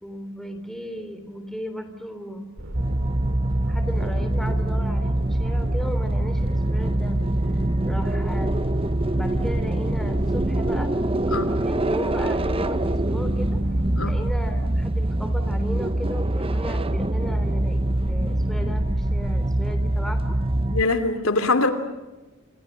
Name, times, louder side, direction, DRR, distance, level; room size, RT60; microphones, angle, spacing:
voice 1, 0.0-2.5 3.7-7.2 7.5-8.5 9.1-10.9 11.6-13.6 14.0-20.4, equal, ahead, 7 dB, 3.3 m, -36 dB
sound 1, 2.6-14.7, equal, 70° right, 3.7 m, -37 dB
sound 2, 2.7-20.8, right 1 dB, 25° right, 0.9 m, -24 dB
voice 2, 20.7-21.7, left 3 dB, 85° left, 9 dB, 2.9 m, -22 dB
29.5 x 28.0 x 6.5 m, 1.2 s
head